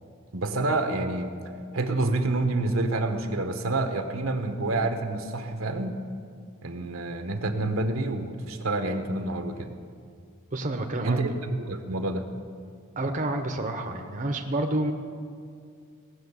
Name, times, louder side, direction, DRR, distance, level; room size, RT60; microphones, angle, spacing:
voice 1, 0.3-1.3 1.7-6.0 6.6-9.7 11.0-12.2, right 2 dB, 70° right, 7 dB, 1.0 m, -28 dB
voice 2, 10.5-11.2 13.0-14.9, right 2 dB, 40° right, 4 dB, 0.8 m, -29 dB
17.5 x 6.5 x 8.1 m, 2.2 s
head